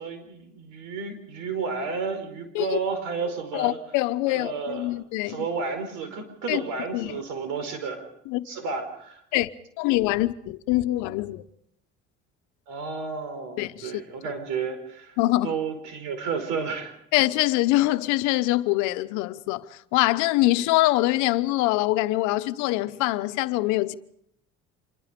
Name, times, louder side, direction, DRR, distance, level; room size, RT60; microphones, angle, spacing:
voice 1, 0.0-3.8 4.3-5.0 5.3-8.0 8.4-9.2 12.7-15.2 15.4-16.9, right 5 dB, 80° right, 4.9 m, -32 dB
voice 2, 3.5-5.4 6.5-6.6 6.9-7.2 8.3-8.4 9.3-9.5 9.8-11.4 13.6-14.0 15.2-15.6 17.1-23.9, left 18 dB, 85° left, 1.0 m, -24 dB
26.5 x 22.0 x 5.2 m
cardioid pair, 95°, 29 cm